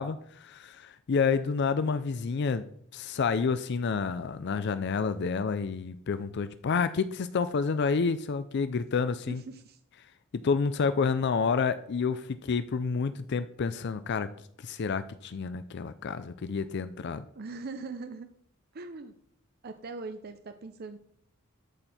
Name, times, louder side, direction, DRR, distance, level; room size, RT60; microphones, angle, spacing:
voice 1, 0.0-2.7 2.9-9.4 10.3-14.3 14.6-17.2, left 5 dB, 55° left, 13 dB, 0.4 m, -29 dB
voice 2, 9.3-9.8 17.3-18.3 18.7-19.1 19.6-21.0, right 3 dB, 50° right, 8 dB, 0.6 m, -41 dB
13.0 x 4.5 x 4.3 m, 0.69 s
head